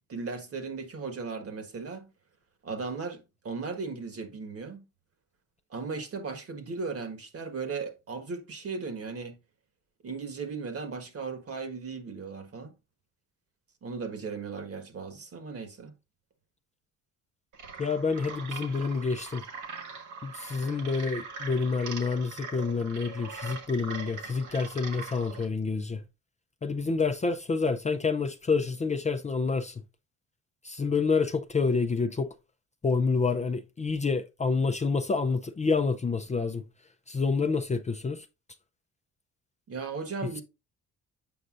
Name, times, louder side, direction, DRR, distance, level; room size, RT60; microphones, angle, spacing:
voice 1, 0.1-2.1 2.6-4.8 5.7-9.4 10.0-12.7 13.8-15.9 39.7-40.4, right 4 dB, 50° right, 1.5 m, -37 dB
sound 1, 17.5-25.5, right 5 dB, 80° right, 1.5 m, -42 dB
voice 2, 17.8-19.4 20.2-26.0 26.6-29.8 30.6-32.3 32.8-36.6 37.1-38.3, left 4 dB, 25° left, 0.5 m, -28 dB
7.7 x 5.3 x 2.5 m
cardioid pair, 90°, 30 cm